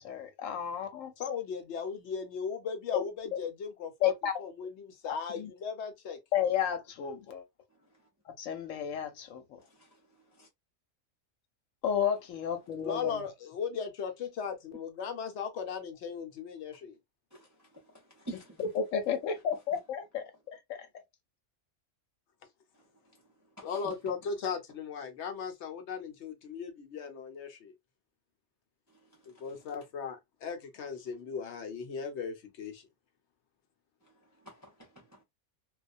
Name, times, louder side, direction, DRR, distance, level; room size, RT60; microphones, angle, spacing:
voice 1, 0.0-1.1 2.9-3.0 4.0-4.3 5.1-5.5 6.3-7.4 8.4-9.4 11.8-13.2 18.7-20.2 20.7-20.9, left 8 dB, 85° left, 1.0 m, -32 dB
voice 2, 1.2-4.1 4.4-6.2 12.8-17.0 23.6-27.7 29.4-32.9, left 6 dB, 65° left, 0.9 m, -37 dB
voice 3, 18.2-18.6 23.6-23.9 34.4-35.2, right 3 dB, 25° right, 0.4 m, -47 dB
2.3 x 2.1 x 2.5 m
omnidirectional pair, 1.3 m